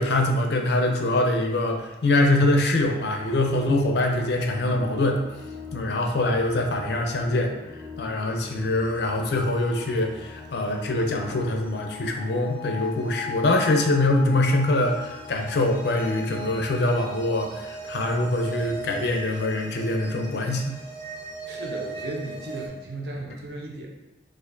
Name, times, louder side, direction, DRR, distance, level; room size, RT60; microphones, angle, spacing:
voice 1, 0.0-5.2 5.7-7.5 8.0-20.8, left 2 dB, 60° left, 3 dB, 0.4 m, -24 dB
sound 1, 3.2-22.7, left 1 dB, 25° left, 0.7 m, -39 dB
voice 2, 21.5-23.9, right 2 dB, 60° right, -1 dB, 0.7 m, -35 dB
4.2 x 2.5 x 2.5 m, 1.0 s
head